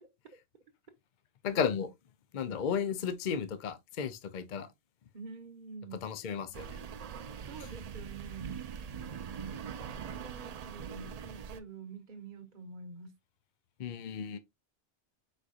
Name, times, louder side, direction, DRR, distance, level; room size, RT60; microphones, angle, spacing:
voice 1, 1.4-1.9 2.3-4.7 6.0-6.7 13.8-14.4, left 7 dB, 50° left, 0.6 m, -33 dB
voice 2, 5.1-6.0 7.4-8.6 9.7-13.2, right 4 dB, 45° right, 1.1 m, -47 dB
sound 1, 6.5-11.6, right 7 dB, 70° right, 0.3 m, -42 dB
4.8 x 4.2 x 2.4 m
omnidirectional pair, 1.2 m